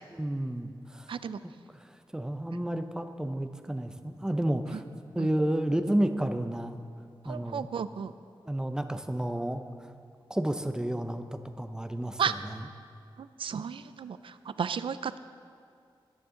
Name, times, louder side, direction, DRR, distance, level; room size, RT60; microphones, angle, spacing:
voice 1, 0.1-1.1 1.7-4.8 5.1-6.8 7.2-7.7 8.5-9.6 10.3-12.7, right 1 dB, 10° right, 8 dB, 0.6 m, -31 dB
voice 2, 1.1-1.4 5.2-5.3 7.2-8.1 12.2-12.3 13.2-15.2, right 7 dB, 80° right, 13 dB, 0.5 m, -33 dB
21.0 x 9.8 x 3.8 m, 2.2 s
wide cardioid pair, 145°, 9 cm